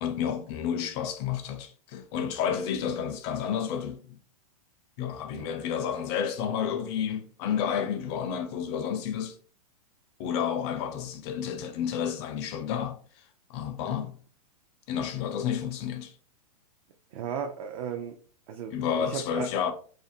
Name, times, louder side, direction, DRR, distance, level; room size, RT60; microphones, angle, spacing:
voice 1, 0.0-4.2 5.0-9.4 10.2-13.0 13.5-14.2 14.9-16.1 18.7-19.7, left 8 dB, 45° left, 0.4 m, -30 dB
voice 2, 17.1-18.2 18.5-19.5, right 8 dB, 60° right, 0.4 m, -35 dB
2.5 x 2.1 x 2.6 m
hypercardioid pair, 130°, 20 cm